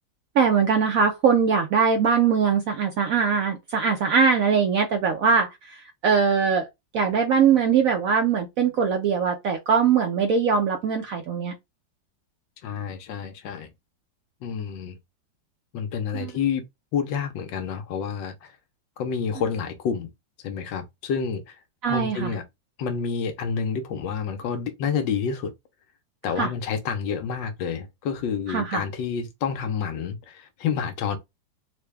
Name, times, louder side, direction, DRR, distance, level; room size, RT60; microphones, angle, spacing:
voice 1, 0.3-6.7 6.9-11.5 16.1-16.3 21.8-22.3 26.4-26.5 28.5-28.8, right 6 dB, 70° right, 0.8 m, -21 dB
voice 2, 12.6-13.7 14.4-15.0 15.7-16.6 16.9-18.5 19.0-20.1 20.4-21.6 21.9-22.4 22.8-25.5 26.2-31.2, left 6 dB, 80° left, 1.4 m, -29 dB
3.8 x 2.2 x 3.3 m
omnidirectional pair, 2.0 m